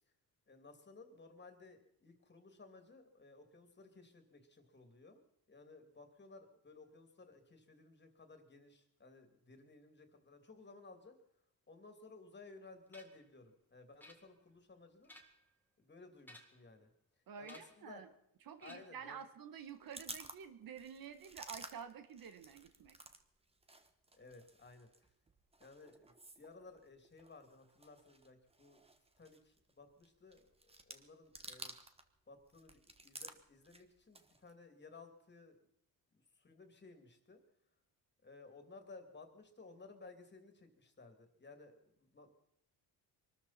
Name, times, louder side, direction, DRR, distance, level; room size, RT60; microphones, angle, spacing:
voice 1, 0.5-5.2 5.5-11.2 11.7-15.1 15.8-16.9 17.4-18.0 18.6-19.2 24.1-24.9 25.6-28.8 29.2-31.7 32.3-35.6 36.3-37.4 38.2-42.4, left 3 dB, 25° left, 5 dB, 2.7 m, -58 dB
sound 1, 12.9-13.3 14.0-14.6 14.9-15.5 16.2-16.7 17.4-17.9 18.6-19.1, left 1 dB, 5° left, 2.0 m, -59 dB
voice 2, 17.3-18.1 18.5-23.0, right 7 dB, 60° right, 9 dB, 1.5 m, -50 dB
sound 2, 19.6-23.2 23.5-32.1 32.4-34.5, right 2 dB, 15° right, 1.3 m, -54 dB
24.0 x 13.0 x 4.3 m, 0.75 s
cardioid pair, 110°, 39 cm